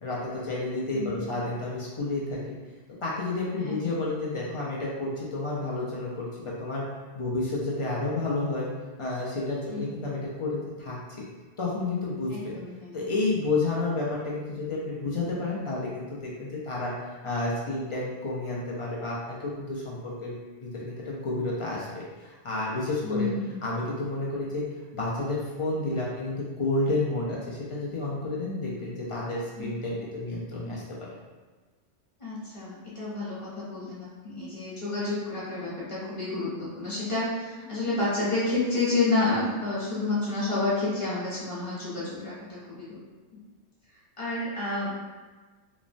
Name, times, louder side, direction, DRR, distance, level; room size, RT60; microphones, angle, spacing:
voice 1, 0.0-2.4 3.0-6.8 7.1-8.7 9.0-11.2 11.6-12.5 12.9-16.9 17.2-20.3 20.6-22.0 22.4-23.3 23.6-24.6 24.9-30.8, left 2 dB, 55° left, -5 dB, 0.3 m, -30 dB
voice 2, 0.9-1.5 3.6-4.0 9.7-10.0 12.3-13.1 23.0-23.6 29.6-29.7 32.2-43.0 44.2-44.9, left 3 dB, 30° left, -9 dB, 0.9 m, -30 dB
3.1 x 2.0 x 2.5 m, 1.3 s
omnidirectional pair, 1.2 m